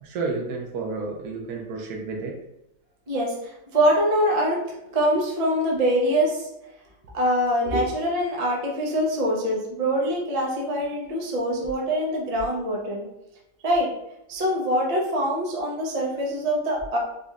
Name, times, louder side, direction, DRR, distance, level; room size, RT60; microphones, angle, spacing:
voice 1, 0.0-2.3 7.7-7.9, right 3 dB, 70° right, 1 dB, 1.1 m, -30 dB
voice 2, 3.7-4.6 4.9-6.4 7.1-13.0 13.6-13.9 14.3-17.0, equal, 50° right, -2 dB, 0.4 m, -24 dB
4.0 x 3.0 x 2.4 m, 0.86 s
omnidirectional pair, 1.9 m